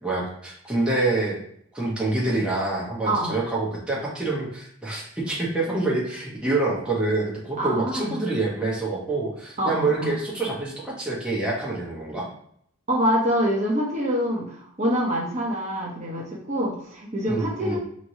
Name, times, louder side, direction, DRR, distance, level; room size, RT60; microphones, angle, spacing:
voice 1, 0.0-1.4 1.7-12.3 17.3-17.8, right 2 dB, 5° right, -5 dB, 0.9 m, -26 dB
voice 2, 7.6-8.2 9.6-10.1 12.9-17.8, equal, 35° right, -4 dB, 0.8 m, -25 dB
4.4 x 3.1 x 2.7 m, 0.67 s
head